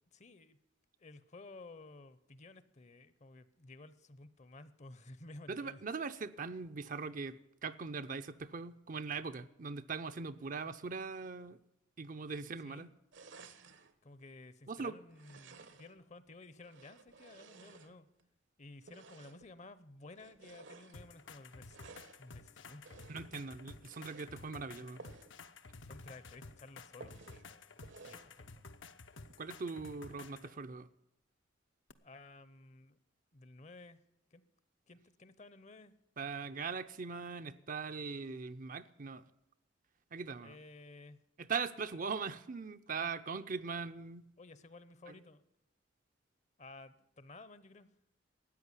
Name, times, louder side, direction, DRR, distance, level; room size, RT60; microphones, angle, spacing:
voice 1, 0.1-0.6 1.0-5.8 12.6-12.9 14.0-18.1 18.6-21.8 22.2-23.3 25.8-28.7 32.0-33.0 33.3-34.0 34.3-34.4 34.9-35.9 40.4-41.2 42.9-43.1 44.4-45.4 46.6-47.9, left 2 dB, 35° left, 0.8 m, -54 dB
voice 2, 5.5-11.6 12.0-12.9 14.7-14.9 23.1-25.0 29.4-30.9 36.2-39.2 40.1-40.6 41.4-44.3 45.1-45.2, right 5 dB, 45° right, 0.6 m, -41 dB
sound 1, 13.1-13.9 15.1-16.0 16.6-18.3 18.8-19.5 20.1-21.0 21.6-22.2 22.8-23.4 23.8-24.3 25.0-25.4 25.7-25.8 26.2-26.3 27.0-27.5 27.8-28.3, right 4 dB, 70° right, 1.1 m, -55 dB
sound 2, 20.9-30.5 31.9-32.0, left 3 dB, 75° left, 0.9 m, -53 dB
13.5 x 9.2 x 9.7 m
head